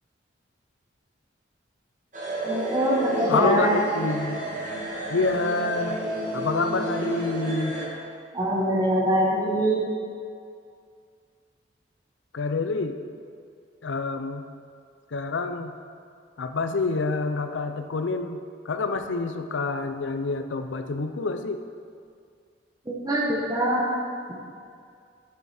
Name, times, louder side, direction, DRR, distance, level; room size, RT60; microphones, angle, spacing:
sound 1, 2.1-7.9, right 1 dB, 40° right, 1.6 m, -31 dB
voice 1, 2.4-3.8 8.3-9.8 22.9-23.9, right 1 dB, 20° right, -3 dB, 1.0 m, -23 dB
voice 2, 3.3-4.4 5.1-6.0 6.3-7.8 12.3-13.0 13.8-14.5 15.1-15.8 16.4-18.4 18.6-21.6, left 3 dB, 75° left, 8 dB, 0.5 m, -27 dB
8.8 x 6.8 x 4.2 m, 2.3 s
head